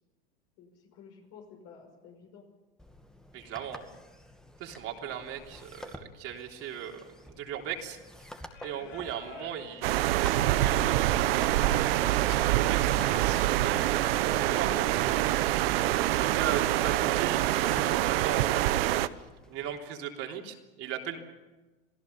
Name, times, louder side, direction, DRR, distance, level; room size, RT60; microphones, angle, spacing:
voice 1, 0.6-2.5 8.8-8.9, left 6 dB, 55° left, 1 dB, 5.6 m, -52 dB
sound 1, 2.8-19.8, equal, ahead, 2.2 m, -50 dB
voice 2, 3.3-3.8 4.6-7.0 7.4-8.0 8.6-15.1 16.1-19.0 19.5-21.2, right 9 dB, 50° right, 1 dB, 3.5 m, -38 dB
Singing, 8.5-18.7, left 6 dB, 80° left, 4.4 m, -49 dB
sound 2, 9.8-19.1, right 15 dB, 70° right, 1.0 m, -26 dB
27.5 x 17.0 x 7.0 m, 1.1 s
hypercardioid pair, 105°, 30 cm